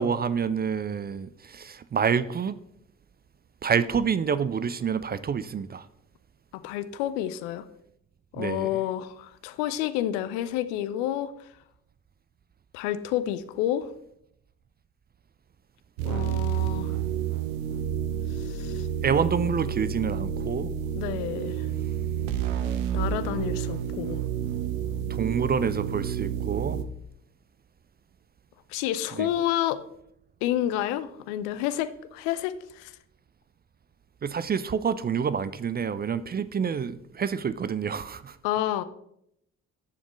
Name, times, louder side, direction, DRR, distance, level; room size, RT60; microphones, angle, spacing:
voice 1, 0.0-2.6 3.6-5.9 8.4-8.7 19.0-20.7 25.1-26.9 29.2-29.3 34.2-38.4, right 6 dB, 25° right, 15 dB, 0.4 m, -27 dB
voice 2, 6.5-7.7 8.3-11.3 12.7-13.9 16.0-17.0 18.3-18.9 20.9-21.7 22.9-24.2 28.7-29.8 30.4-32.9 38.4-38.8, left 12 dB, 70° left, 13 dB, 0.6 m, -29 dB
sound 1, 16.0-26.8, right 9 dB, 75° right, 0.7 m, -29 dB
11.0 x 7.1 x 3.1 m, 0.75 s
figure-of-eight pair, 40°, 39 cm